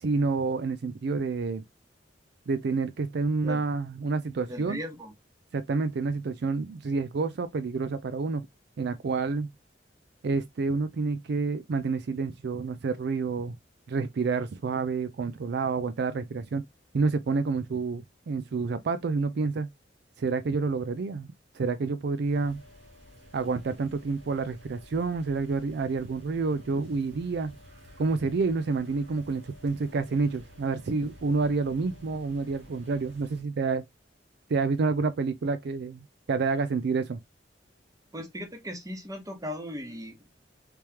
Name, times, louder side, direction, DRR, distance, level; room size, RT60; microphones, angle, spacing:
voice 1, 0.0-1.6 2.5-4.8 5.5-8.5 8.8-9.5 10.2-13.6 13.9-16.7 16.9-19.7 20.2-21.3 21.5-22.6 23.3-27.5 28.0-33.8 34.5-37.2, right 4 dB, 65° right, 0.4 m, -28 dB
voice 2, 4.5-5.1 38.1-40.3, equal, 20° right, 1.0 m, -37 dB
sound 1, 22.2-33.4, equal, 85° right, 1.9 m, -52 dB
3.4 x 3.0 x 2.8 m
head